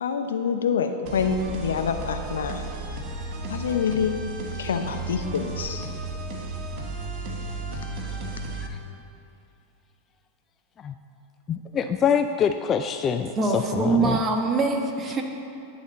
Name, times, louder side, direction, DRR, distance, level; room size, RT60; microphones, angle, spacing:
voice 1, 0.0-2.6 3.5-4.2 4.6-5.9, left 6 dB, 80° left, 6 dB, 0.7 m, -26 dB
sound 1, 1.1-8.7, right 2 dB, 50° right, 1.3 m, -34 dB
voice 2, 11.5-14.2, left 7 dB, 30° left, 8 dB, 0.4 m, -25 dB
voice 3, 13.4-15.2, right 3 dB, 30° right, 2 dB, 1.3 m, -23 dB
11.0 x 4.2 x 7.8 m, 2.6 s
hypercardioid pair, 95°, 0 cm